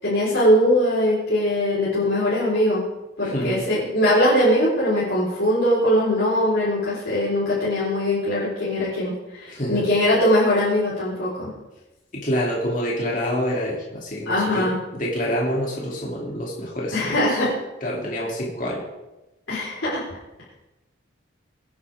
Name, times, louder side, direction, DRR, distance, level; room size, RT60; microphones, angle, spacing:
voice 1, 0.0-2.8 3.2-11.5 14.3-14.8 16.9-17.5 19.5-20.0, equal, 70° left, -9 dB, 4.3 m, -21 dB
voice 2, 3.2-3.7 9.5-9.9 12.1-17.5 17.8-18.8, equal, 40° left, -4 dB, 2.8 m, -27 dB
24.0 x 9.5 x 3.6 m, 1.0 s
head